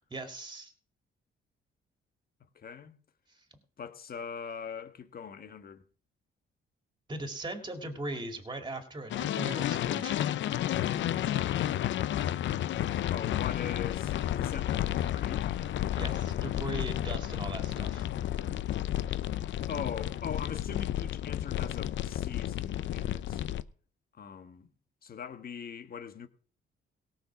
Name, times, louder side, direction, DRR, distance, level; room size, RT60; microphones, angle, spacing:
voice 1, 0.1-0.7 7.1-10.3 16.0-18.1, right 2 dB, 20° right, 2.4 m, -39 dB
voice 2, 2.5-2.9 3.8-5.8 13.1-15.6 19.7-23.4 24.2-24.7 25.0-26.3, left 7 dB, 50° left, 1.5 m, -41 dB
synthinablender lava, 9.1-23.6, left 12 dB, 70° left, 0.7 m, -31 dB
17.5 x 6.0 x 6.1 m
cardioid pair, 90°, 20 cm